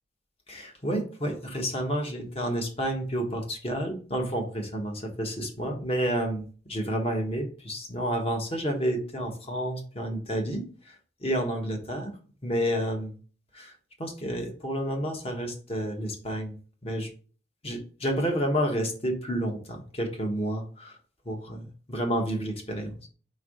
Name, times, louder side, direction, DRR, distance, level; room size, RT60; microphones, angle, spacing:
voice 1, 0.5-12.1 12.4-13.1 13.5-13.7 14.0-16.6 16.8-17.1 17.6-21.0 21.2-23.0, equal, 30° left, 3 dB, 1.3 m, -30 dB
4.7 x 4.6 x 5.0 m, 0.39 s
head